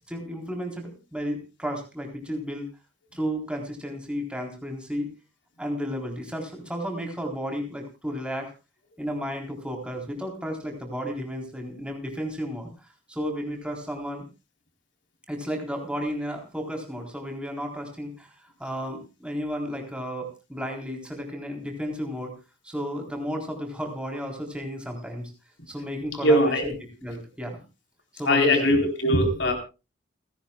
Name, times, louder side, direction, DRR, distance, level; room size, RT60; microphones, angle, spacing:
voice 1, 0.1-2.7 3.1-5.1 5.6-8.5 9.0-14.2 15.3-22.3 22.6-25.3 25.7-27.6 28.1-28.7, equal, 5° right, 2 dB, 3.8 m, -33 dB
voice 2, 26.2-26.7 28.3-29.5, left 1 dB, 65° left, 4 dB, 4.1 m, -20 dB
29.5 x 10.5 x 2.4 m, 0.29 s
head